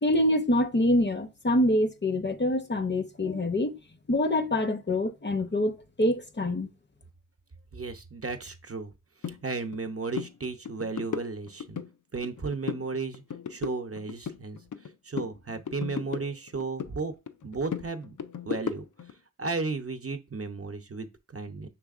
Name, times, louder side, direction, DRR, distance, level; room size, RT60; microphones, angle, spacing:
voice 1, 0.0-3.8 4.1-6.7, left 1 dB, 35° left, 0.6 m, -25 dB
voice 2, 7.7-8.9 9.2-11.8 12.1-13.2 13.5-14.6 15.0-17.1 17.4-18.2 18.4-18.8 19.4-21.7, right 4 dB, 50° right, 0.6 m, -34 dB
sound 1, 9.2-9.4 9.7-9.9 10.1-10.3 10.7-11.9 12.2-12.9 13.1-14.9 15.2-16.9 17.3-19.1, left 7 dB, 75° left, 0.5 m, -36 dB
6.0 x 3.4 x 2.4 m
wide cardioid pair, 40°, 31 cm